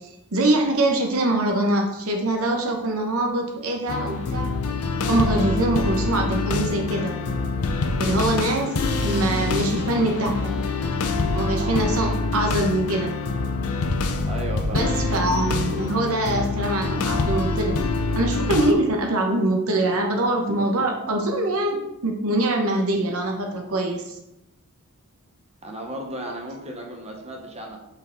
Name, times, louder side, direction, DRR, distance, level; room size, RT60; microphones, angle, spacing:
voice 1, 0.0-4.5 5.1-7.1 8.0-10.6 11.3-13.1 14.7-17.8 18.1-24.2, right 2 dB, 70° right, 3 dB, 0.9 m, -23 dB
sound 1, 3.9-18.7, left 3 dB, 85° left, 0.6 m, -25 dB
voice 2, 14.3-14.9 25.6-27.8, right 1 dB, 30° right, 0 dB, 1.0 m, -35 dB
5.7 x 4.5 x 3.8 m, 0.86 s
head